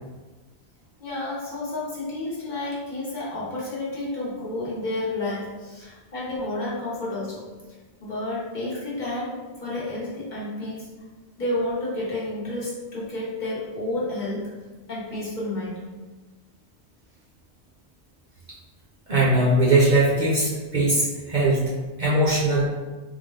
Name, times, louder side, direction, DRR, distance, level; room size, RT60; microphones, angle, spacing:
voice 1, 1.0-7.4 8.0-10.9 11.4-14.5 14.9-15.9, left 2 dB, 45° left, -7 dB, 1.0 m, -30 dB
voice 2, 19.1-21.7 22.0-22.6, right 2 dB, 45° right, -6 dB, 0.8 m, -20 dB
3.7 x 2.2 x 3.2 m, 1.3 s
omnidirectional pair, 1.1 m